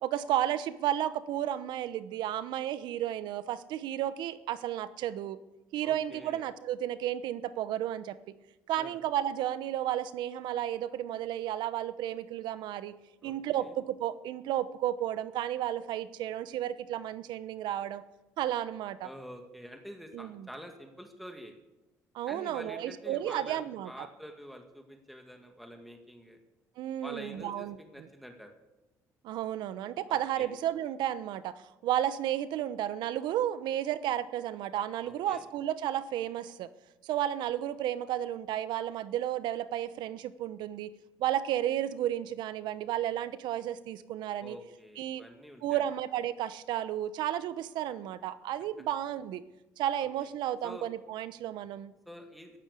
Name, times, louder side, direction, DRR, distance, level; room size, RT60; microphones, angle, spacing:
voice 1, 0.0-5.4 5.7-8.2 8.7-13.0 13.2-18.0 18.4-19.1 20.1-20.5 22.1-23.9 26.8-28.1 29.2-36.7 37.0-40.9 41.2-44.6 45.0-45.2 45.6-49.4 49.8-51.9, right 11 dB, 75° right, 14 dB, 1.0 m, -33 dB
voice 2, 5.8-6.4 8.8-9.0 13.2-13.7 19.0-21.5 22.3-26.4 27.0-28.5 30.1-30.5 35.0-35.4 44.4-45.8 50.6-50.9 52.1-52.6, equal, ahead, 3 dB, 2.2 m, -47 dB
14.0 x 11.5 x 8.4 m, 1.0 s
supercardioid pair, 85°, 8 cm